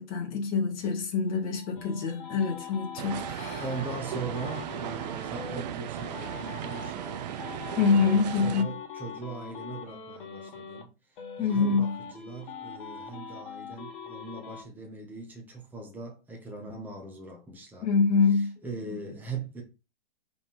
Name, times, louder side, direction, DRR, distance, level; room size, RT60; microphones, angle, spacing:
voice 1, 0.0-3.6 7.8-8.8 11.4-12.0 17.8-18.6, left 5 dB, 25° left, 2.2 m, -25 dB
sound 1, 1.3-5.6 6.0-10.8 11.2-14.6, left 6 dB, 50° left, 1.9 m, -42 dB
sound 2, 3.0-8.6, right 12 dB, 40° right, 0.6 m, -36 dB
voice 2, 3.6-7.5 8.4-10.9 11.4-17.9 18.6-19.6, right 3 dB, 5° right, 1.4 m, -40 dB
4.8 x 4.1 x 5.6 m
hypercardioid pair, 140°, 33 cm